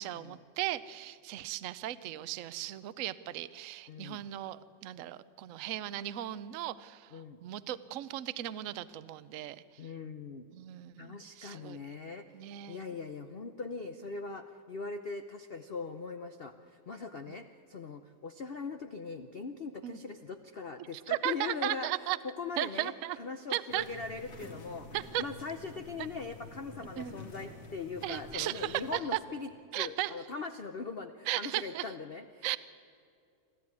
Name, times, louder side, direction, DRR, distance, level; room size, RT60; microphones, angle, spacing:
voice 1, 0.0-9.6 10.5-12.0 12.3-12.8 17.3-17.4 19.8-20.0 20.9-22.2 22.6-23.2 23.5-23.8 24.9-25.2 27.0-27.1 28.0-29.2 29.7-30.1 31.3-31.9 32.4-32.6, right 14 dB, 75° right, 15 dB, 0.7 m, -36 dB
voice 2, 3.9-4.3 7.1-7.4 9.8-10.5 11.0-12.2 12.7-16.5 16.9-24.9 25.2-29.5 29.7-32.6, left 4 dB, 90° left, 8 dB, 0.5 m, -41 dB
sound 1, 23.7-29.0, left 2 dB, 45° left, 2.4 m, -49 dB
25.5 x 14.0 x 9.6 m, 2.4 s
omnidirectional pair, 2.2 m